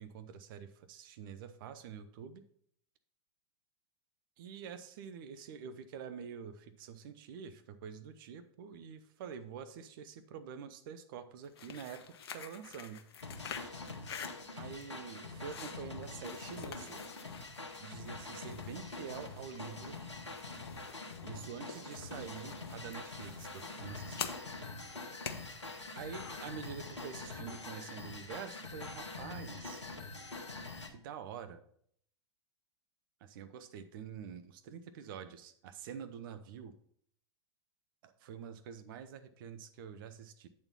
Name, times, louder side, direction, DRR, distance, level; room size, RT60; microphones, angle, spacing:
voice 1, 0.0-2.4 4.4-12.1 12.3-13.0 14.5-17.0 17.7-20.0 21.2-24.3 25.9-29.9 30.9-31.6 33.2-36.7 38.0-40.5, right 7 dB, 50° right, 10 dB, 0.6 m, -47 dB
sound 1, 11.4-27.0, left 7 dB, 60° left, 0.9 m, -49 dB
sound 2, 13.2-30.9, left 3 dB, 85° left, 1.2 m, -45 dB
8.7 x 4.2 x 5.5 m, 0.64 s
figure-of-eight pair, 100°, 15 cm